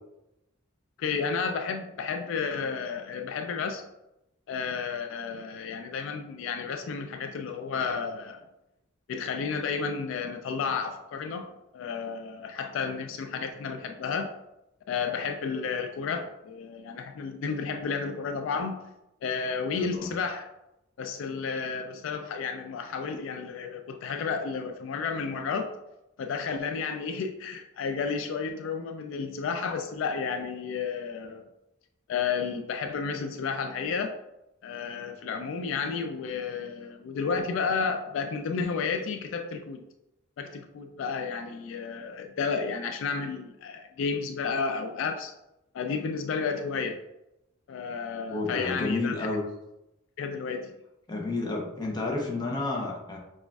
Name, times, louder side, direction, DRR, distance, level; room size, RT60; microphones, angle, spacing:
voice 1, 1.0-3.9 4.5-8.4 9.1-14.3 14.9-18.8 19.2-20.5 21.0-25.8 26.2-31.4 32.1-34.1 34.6-39.8 40.4-45.3 45.7-47.0 47.7-49.3 50.2-50.7, left 5 dB, 70° left, 5 dB, 0.3 m, -32 dB
voice 2, 19.7-20.1 48.3-49.4 51.1-53.2, left 2 dB, 20° left, -1 dB, 0.6 m, -30 dB
6.0 x 2.4 x 2.3 m, 0.90 s
head